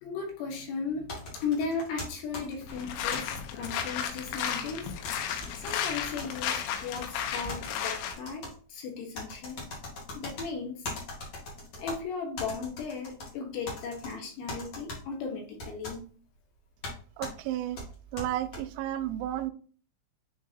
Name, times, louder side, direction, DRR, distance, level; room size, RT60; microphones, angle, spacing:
voice 1, 0.0-4.9 5.6-9.7 10.1-10.9 11.8-16.1, left 5 dB, 70° left, 2.7 m, -36 dB
sound 1, 1.1-3.2 3.6-4.7 5.0-5.7 6.2-7.0 7.5-8.5 9.1-10.5 10.8-12.0 12.4-13.3 13.7-14.1 14.5-15.0 15.6-16.0 16.8-16.9 17.2-17.3 17.8-18.6, left 2 dB, 50° left, 2.2 m, -40 dB
sound 2, 2.7-8.1, left 8 dB, 90° left, 3.6 m, -34 dB
voice 2, 17.2-17.8 18.1-19.5, right 13 dB, 85° right, 2.8 m, -32 dB
9.9 x 3.8 x 2.7 m
omnidirectional pair, 5.9 m